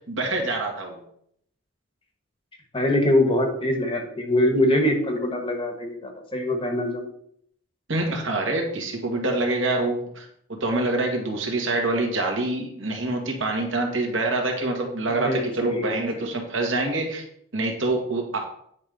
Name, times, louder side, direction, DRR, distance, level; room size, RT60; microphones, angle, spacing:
voice 1, 0.1-1.0 7.9-17.2 17.5-18.4, right 2 dB, 70° right, 2 dB, 1.7 m, -26 dB
voice 2, 2.7-7.1 15.1-15.9, left 1 dB, 25° left, 4 dB, 1.1 m, -23 dB
9.4 x 3.5 x 5.2 m, 0.68 s
head